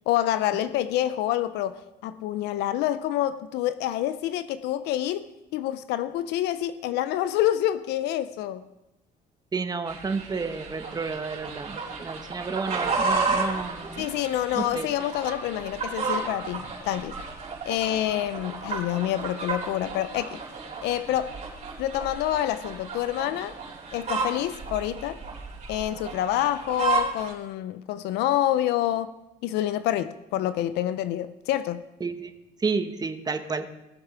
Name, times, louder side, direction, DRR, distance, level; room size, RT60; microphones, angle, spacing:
voice 1, 0.1-8.6 14.0-17.2 17.7-20.4 20.8-21.3 21.8-23.5 23.9-25.2 25.7-29.1 29.4-31.8, left 12 dB, 85° left, 0.6 m, -27 dB
voice 2, 9.5-14.1 14.5-15.1 32.0-32.3 32.6-33.7, right 4 dB, 25° right, 1.2 m, -31 dB
sound 1, 9.9-27.3, right 4 dB, 40° right, 3.9 m, -32 dB
19.0 x 7.3 x 5.0 m
cardioid pair, 110°, 17 cm